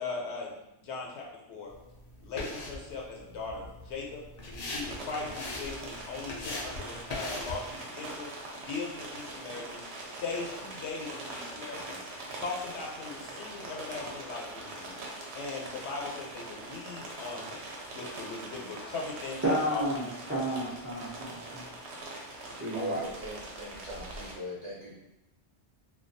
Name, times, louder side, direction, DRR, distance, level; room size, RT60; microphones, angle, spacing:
voice 1, 0.0-1.7 2.2-4.2 4.5-8.3 8.6-12.0 12.3-14.9 15.3-19.8 20.3-20.4, left 4 dB, 80° left, -2 dB, 0.9 m, -39 dB
sound 1, 1.7-7.7, left 2 dB, 55° left, 0.4 m, -41 dB
sound 2, 4.8-24.3, right 2 dB, 75° right, 0.8 m, -42 dB
voice 2, 19.4-21.7 22.5-23.0, right 1 dB, 25° right, -8 dB, 0.3 m, -31 dB
voice 3, 22.7-24.9, equal, 40° right, -7 dB, 0.7 m, -38 dB
2.3 x 2.3 x 2.6 m, 0.93 s
omnidirectional pair, 1.1 m